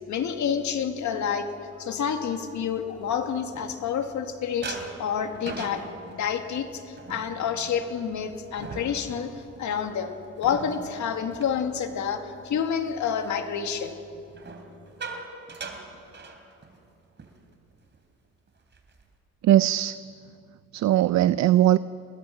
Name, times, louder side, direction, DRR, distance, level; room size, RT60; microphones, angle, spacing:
voice 1, 0.1-1.5 1.8-5.8 6.1-9.3 9.6-14.0, left 7 dB, 70° left, 6 dB, 2.1 m, -29 dB
sound 1, 2.7-4.2 4.6-12.4 12.8-13.1 14.3-16.9 17.2-17.4 17.7-18.0 18.5-19.1, right 4 dB, 35° right, 3.2 m, -42 dB
voice 2, 19.4-20.0 20.7-21.8, right 13 dB, 65° right, 16 dB, 0.5 m, -19 dB
28.0 x 20.0 x 5.8 m, 2.5 s
cardioid pair, 90°, 30 cm